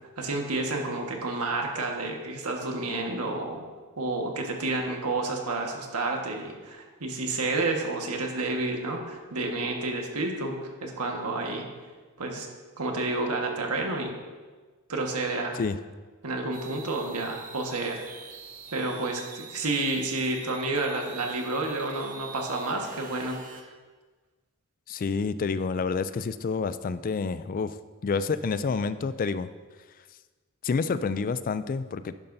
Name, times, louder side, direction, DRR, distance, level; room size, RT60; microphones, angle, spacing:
voice 1, 0.2-3.6 4.0-11.7 12.2-12.5 12.8-14.1 14.9-15.6 16.2-18.0 18.7-23.7, right 2 dB, 85° right, 1 dB, 1.5 m, -30 dB
sound 1, 16.5-23.6, right 5 dB, 35° right, 0.9 m, -45 dB
voice 2, 24.9-27.8 28.0-29.5 30.6-32.1, left 4 dB, 40° left, 13 dB, 0.3 m, -28 dB
11.5 x 11.0 x 2.7 m, 1.4 s
head